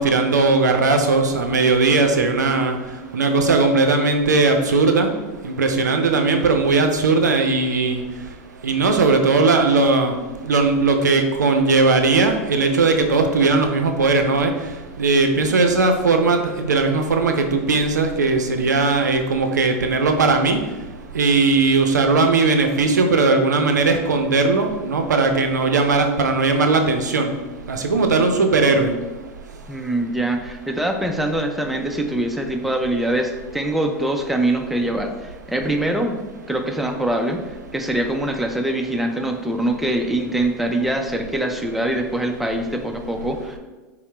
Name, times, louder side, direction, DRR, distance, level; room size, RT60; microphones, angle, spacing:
voice 1, 0.0-2.8 3.1-5.1 5.4-8.0 8.6-10.2 10.4-14.5 15.0-20.6 21.1-27.3 27.7-28.9, right 3 dB, 85° right, 5 dB, 0.4 m, -18 dB
voice 2, 29.7-36.2 36.5-37.5 37.7-43.6, right 1 dB, ahead, 3 dB, 0.4 m, -23 dB
5.5 x 2.0 x 3.2 m, 1.2 s
hypercardioid pair, 90°, 9 cm